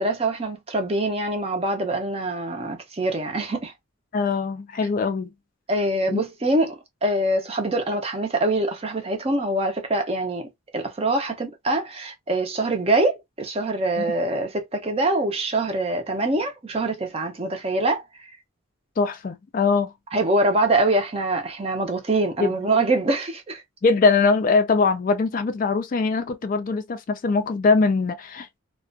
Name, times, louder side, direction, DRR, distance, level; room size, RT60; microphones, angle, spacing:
voice 1, 0.0-3.7 5.7-18.0 20.1-23.6, right 2 dB, 30° right, 0.5 m, -24 dB
voice 2, 4.1-5.3 6.1-6.2 14.0-14.1 19.0-19.9 22.4-22.6 23.8-28.6, left 4 dB, 40° left, 0.3 m, -22 dB
2.3 x 2.1 x 2.5 m
head